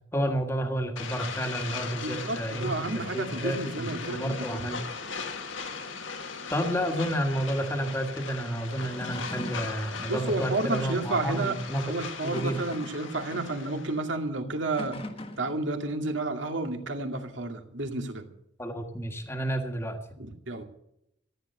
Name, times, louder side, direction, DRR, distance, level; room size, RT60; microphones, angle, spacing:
voice 1, 0.1-2.9 3.1-4.8 6.5-11.8 12.2-12.6 18.6-20.0, equal, 15° left, 4 dB, 1.6 m, -30 dB
sound 1, 1.0-14.0, left 5 dB, 80° left, 1.8 m, -39 dB
voice 2, 2.0-4.5 10.1-11.6 11.8-15.0 15.4-18.2 20.2-20.6, right 2 dB, 75° right, 4 dB, 2.3 m, -31 dB
sound 2, 8.7-9.8 11.0-11.2 12.0-13.6 14.6-15.6, left 1 dB, 30° left, 1.4 m, -41 dB
14.5 x 10.5 x 6.8 m, 0.77 s
head